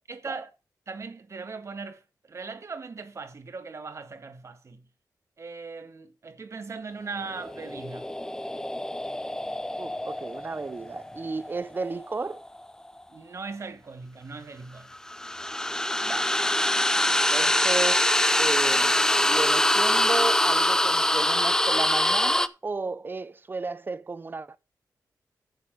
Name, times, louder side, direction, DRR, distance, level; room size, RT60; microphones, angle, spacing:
voice 1, 0.1-0.5 0.9-2.0 2.3-4.8 5.4-8.1 13.1-14.9, right 4 dB, 50° right, 1.8 m, -39 dB
sound 1, 7.3-12.5 14.9-22.5, left 1 dB, 10° left, 0.6 m, -24 dB
voice 2, 9.8-12.4 16.0-16.4 17.3-18.1 18.4-24.6, right 3 dB, 30° right, 0.7 m, -33 dB
9.7 x 7.0 x 5.3 m
wide cardioid pair, 100°, 7 cm